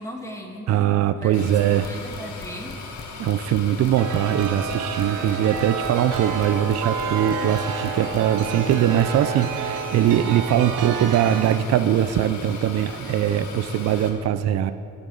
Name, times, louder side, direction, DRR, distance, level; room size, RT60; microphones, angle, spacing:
voice 1, 0.0-1.4 1.7-2.8, equal, 10° left, -1 dB, 1.7 m, -37 dB
voice 2, 0.7-1.9 3.2-14.7, right 10 dB, 60° right, 12 dB, 0.5 m, -21 dB
sound 1, 1.3-14.1, left 4 dB, 70° left, 1.8 m, -38 dB
sound 2, 1.5-9.0, left 7 dB, 35° left, 0.6 m, -41 dB
Chime, 4.0-11.6, right 6 dB, 85° right, 0.8 m, -30 dB
18.5 x 8.9 x 3.9 m, 2.6 s
cardioid pair, 90°, 30 cm